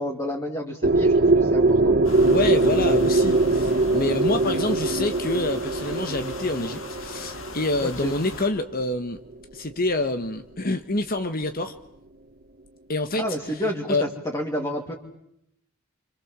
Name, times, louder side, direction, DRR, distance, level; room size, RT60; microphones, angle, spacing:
voice 1, 0.0-1.9 7.8-8.1 13.2-14.9, equal, 15° left, 0 dB, 3.1 m, -30 dB
sound 1, 0.8-8.7, right 2 dB, 45° right, 1.5 m, -22 dB
sound 2, 2.0-8.5, left 3 dB, 70° left, 4.2 m, -40 dB
voice 2, 2.3-9.2 9.5-11.8 12.9-13.2 13.9-14.0, left 2 dB, 45° left, 8 dB, 1.4 m, -27 dB
28.5 x 27.0 x 7.6 m, 0.77 s
head